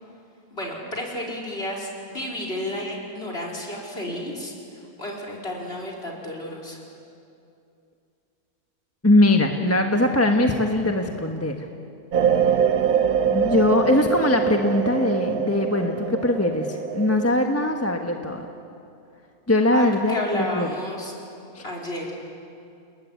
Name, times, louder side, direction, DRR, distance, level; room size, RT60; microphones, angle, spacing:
voice 1, 0.5-6.8 19.7-21.1 21.6-22.1, left 1 dB, 40° left, -1 dB, 5.0 m, -32 dB
voice 2, 9.0-11.6 13.3-18.5 19.5-20.7 21.5-21.6, left 1 dB, 10° left, 3 dB, 1.3 m, -21 dB
sound 1, 12.1-17.3, right 7 dB, 75° right, 1.6 m, -23 dB
29.5 x 20.5 x 9.8 m, 2.6 s
omnidirectional pair, 1.6 m